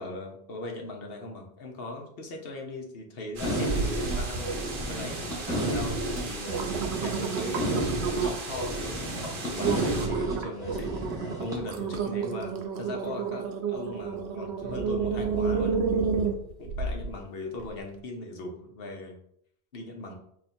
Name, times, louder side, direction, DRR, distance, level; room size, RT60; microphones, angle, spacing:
voice 1, 0.0-4.6 4.9-6.7 7.0-10.9 11.4-15.8 16.6-19.2 19.7-20.1, left 2 dB, 65° left, 2 dB, 1.1 m, -39 dB
sound 1, 3.4-11.6, right 1 dB, 5° right, 1.6 m, -31 dB
sound 2, 3.4-10.1, right 3 dB, 55° right, 0.9 m, -38 dB
sound 3, 3.7-4.3 4.7-5.2 5.8-5.9 6.3-8.5 9.0-9.2 9.6-17.1 17.6-17.7, right 6 dB, 90° right, 0.9 m, -30 dB
4.2 x 2.8 x 4.3 m, 0.69 s
omnidirectional pair, 1.1 m